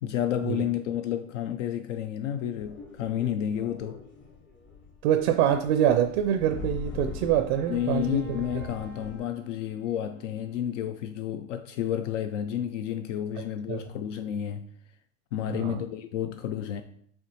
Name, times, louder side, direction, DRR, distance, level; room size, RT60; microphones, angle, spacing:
voice 1, 0.0-4.0 7.7-14.7 15.3-16.8, left 10 dB, 70° left, 0.5 m, -31 dB
sound 1, 2.6-9.2, left 5 dB, 30° left, 1.0 m, -42 dB
voice 2, 5.0-8.4 13.4-13.8 15.5-15.8, right 10 dB, 55° right, 0.5 m, -25 dB
Wind instrument woodwind instrument, 6.2-11.1, left 1 dB, 90° left, 1.4 m, -51 dB
5.6 x 3.2 x 2.9 m
hypercardioid pair, 95°, 38 cm